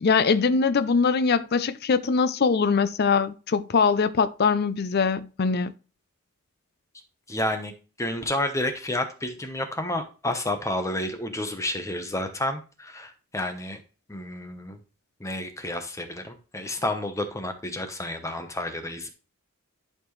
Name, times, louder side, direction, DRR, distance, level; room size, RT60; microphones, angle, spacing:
voice 1, 0.0-5.7, left 5 dB, 45° left, 0.4 m, -22 dB
voice 2, 7.3-7.7 8.0-13.8 14.1-14.8 15.2-19.1, left 1 dB, 15° left, 0.9 m, -30 dB
11.5 x 4.4 x 3.1 m
head